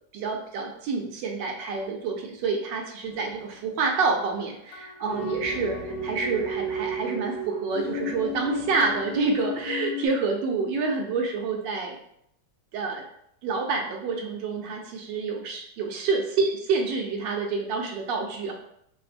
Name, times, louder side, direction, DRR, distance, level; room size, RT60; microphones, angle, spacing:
voice 1, 0.1-12.0 12.7-13.0 13.4-18.5, right 4 dB, 90° right, 1 dB, 1.3 m, -28 dB
sound 1, 3.0-3.4 4.1-4.2 4.4-4.5 4.7-10.1, equal, 75° left, 1.1 m, -33 dB
4.3 x 2.0 x 2.4 m, 0.72 s
omnidirectional pair, 1.9 m